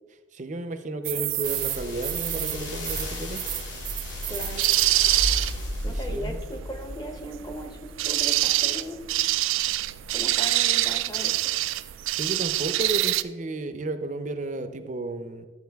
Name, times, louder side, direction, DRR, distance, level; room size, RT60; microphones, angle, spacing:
voice 1, 0.3-3.4 5.9-6.4 12.1-15.5, right 2 dB, 40° right, 9 dB, 0.6 m, -33 dB
sound 1, 1.0-13.2, right 16 dB, 90° right, 0.3 m, -26 dB
sound 2, 1.4-7.9 8.5-8.6, left 1 dB, 70° left, 2.1 m, -34 dB
voice 2, 4.3-4.6 5.8-9.0 10.1-11.5, equal, 20° left, 6 dB, 0.8 m, -37 dB
11.5 x 7.0 x 3.4 m, 1.5 s
head